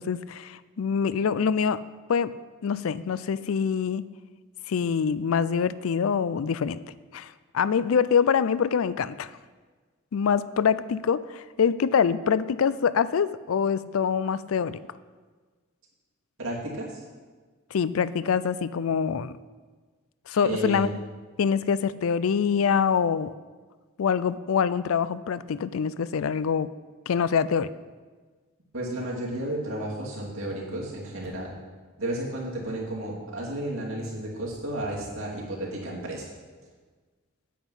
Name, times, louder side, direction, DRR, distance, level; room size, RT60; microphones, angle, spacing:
voice 1, 0.0-1.8 2.1-2.3 2.6-4.1 4.7-6.8 7.1-9.3 10.1-14.8 17.7-19.4 20.3-21.0 21.4-23.3 24.0-26.7 27.1-27.7, left 6 dB, 90° left, 16 dB, 0.4 m, -25 dB
voice 2, 16.4-17.0 20.4-20.9 28.7-31.5 32.0-36.3, right 1 dB, 90° right, -3 dB, 2.7 m, -32 dB
9.2 x 8.1 x 5.6 m, 1.4 s
head